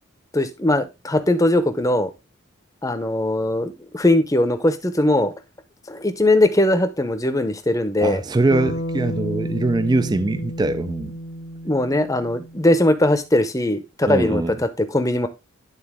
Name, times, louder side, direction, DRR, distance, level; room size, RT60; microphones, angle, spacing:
voice 1, 0.3-2.1 2.8-5.3 5.9-8.2 11.6-15.3, left 1 dB, 15° left, 0.7 m, -20 dB
voice 2, 8.0-11.2 14.1-14.5, right 2 dB, 20° right, 0.3 m, -22 dB
Bass guitar, 8.5-12.9, equal, 75° left, 1.4 m, -31 dB
11.0 x 3.9 x 3.6 m
head